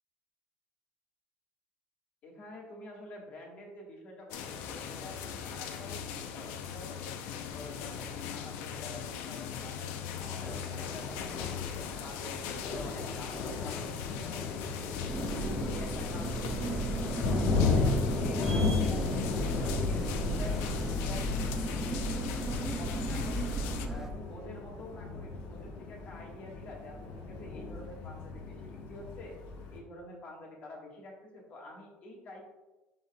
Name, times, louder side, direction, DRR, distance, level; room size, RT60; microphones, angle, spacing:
voice 1, 2.2-7.1 7.5-11.7 12.0-14.8 15.2-23.5 23.9-27.0 27.3-29.4 29.7-32.5, left 1 dB, 40° left, -1 dB, 1.5 m, -48 dB
sound 1, 4.3-23.9, left 8 dB, 85° left, 0.6 m, -40 dB
Thunder, 10.0-29.8, left 3 dB, 70° left, 1.1 m, -35 dB
sound 2, 15.1-24.1, right 1 dB, 10° right, 0.5 m, -35 dB
11.0 x 4.0 x 2.3 m, 1.1 s
cardioid pair, 170°, 4 cm